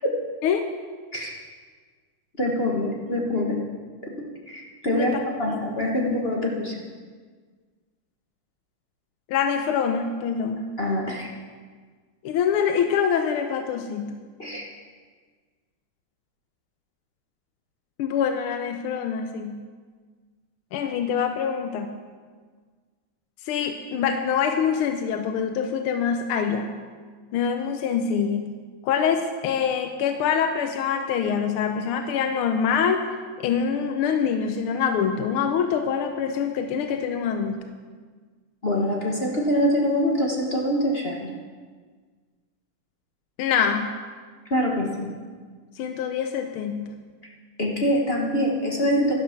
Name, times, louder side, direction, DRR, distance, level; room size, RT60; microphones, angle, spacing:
voice 1, 2.4-3.6 4.0-6.8 10.8-11.3 14.4-14.6 38.6-41.3 44.5-45.1 47.6-49.1, equal, 30° left, -2 dB, 1.5 m, -24 dB
voice 2, 9.3-10.7 12.2-14.2 18.0-19.6 20.7-21.9 23.5-26.8 27.3-28.6 28.8-33.1 33.4-37.6 43.4-43.9 45.8-46.9, left 7 dB, 85° left, 6 dB, 1.6 m, -25 dB
12.0 x 11.5 x 5.9 m, 1.5 s
omnidirectional pair, 2.4 m